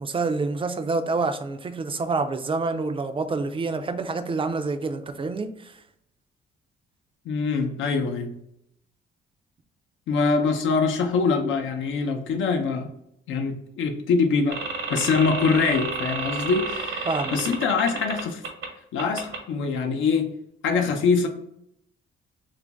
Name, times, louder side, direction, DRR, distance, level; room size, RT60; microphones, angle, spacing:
voice 1, 0.0-5.8 17.1-17.4, right 3 dB, 25° right, 8 dB, 0.3 m, -27 dB
voice 2, 7.3-8.3 10.1-12.9 13.3-14.6 14.9-18.4 18.9-20.3 20.6-21.3, left 4 dB, 75° left, 4 dB, 0.6 m, -24 dB
sound 1, 14.5-18.7 19.0-19.4, right 4 dB, 80° right, 0.9 m, -31 dB
3.0 x 2.5 x 3.4 m, 0.76 s
cardioid pair, 90°, 20 cm